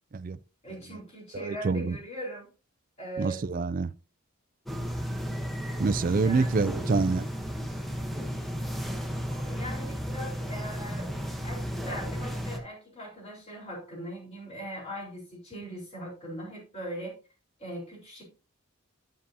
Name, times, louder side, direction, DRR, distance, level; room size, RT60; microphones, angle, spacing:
voice 1, 0.6-2.5 3.0-3.4 6.0-6.6 9.5-17.1 17.6-18.2, equal, 30° left, 4.2 m, -40 dB
voice 2, 1.3-2.0 3.2-3.9 5.8-7.3, right 4 dB, 40° right, 0.4 m, -27 dB
sound 1, 4.7-12.6, equal, ahead, 0.9 m, -33 dB
8.4 x 7.5 x 2.7 m
head